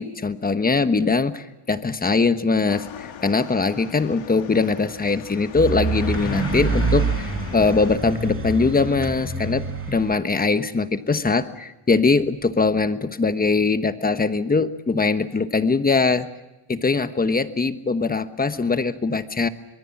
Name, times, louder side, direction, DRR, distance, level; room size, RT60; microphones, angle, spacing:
voice 1, 0.0-16.3 16.7-19.5, left 4 dB, 20° left, 10 dB, 1.2 m, -22 dB
sound 1, 2.7-8.0, left 9 dB, 70° left, 2.3 m, -39 dB
sound 2, 5.6-10.1, right 4 dB, 25° right, 4.5 m, -26 dB
25.5 x 22.0 x 7.3 m, 1.0 s
cardioid pair, 130°, 48 cm